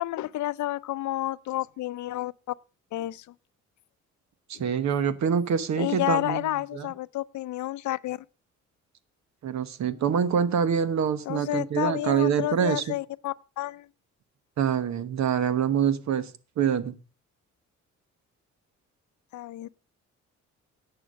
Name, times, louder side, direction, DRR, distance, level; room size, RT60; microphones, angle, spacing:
voice 1, 0.0-2.5 2.9-3.3 5.8-8.2 11.3-13.9 19.3-19.7, left 15 dB, 70° left, 0.6 m, -30 dB
voice 2, 4.5-6.9 9.4-13.0 14.6-16.3 16.6-16.9, right 7 dB, 65° right, 1.2 m, -25 dB
11.0 x 7.0 x 6.2 m
cardioid pair, 90°, 30 cm